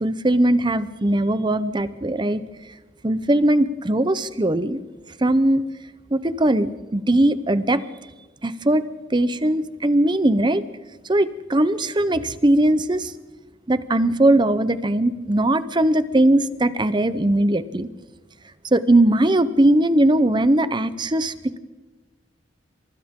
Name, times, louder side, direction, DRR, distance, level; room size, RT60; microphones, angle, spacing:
voice 1, 0.0-2.4 3.0-4.8 5.2-5.6 6.1-7.8 8.4-8.8 9.1-10.6 11.1-13.1 13.7-17.9 18.7-21.6, right 1 dB, 25° right, 13 dB, 0.8 m, -19 dB
28.5 x 26.0 x 3.7 m, 1.2 s
head